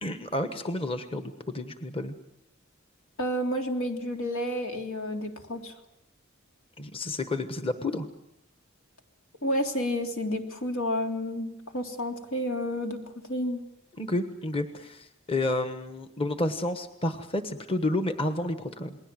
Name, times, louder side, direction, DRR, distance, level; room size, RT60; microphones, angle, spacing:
voice 1, 0.0-2.1 6.8-8.1 14.0-19.0, left 2 dB, 25° left, 9 dB, 1.2 m, -30 dB
voice 2, 3.2-5.7 9.4-13.0 13.3-13.6, equal, 80° left, 4 dB, 3.2 m, -30 dB
29.0 x 20.5 x 7.6 m, 0.79 s
head